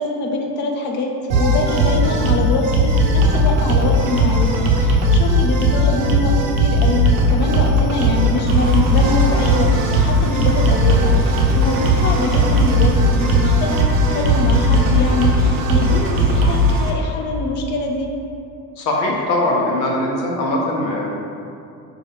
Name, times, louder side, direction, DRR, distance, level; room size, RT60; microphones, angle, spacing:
voice 1, 0.0-9.7 10.0-18.1, left 3 dB, 25° left, 1 dB, 0.4 m, -24 dB
sound 1, 1.3-16.6, equal, 60° right, 0.7 m, -17 dB
Engine, 8.5-16.9, right 2 dB, 30° right, 0.5 m, -28 dB
voice 2, 18.8-21.2, left 1 dB, 85° left, -2 dB, 0.8 m, -21 dB
5.0 x 2.3 x 3.4 m, 2.5 s
hypercardioid pair, 75°, 49 cm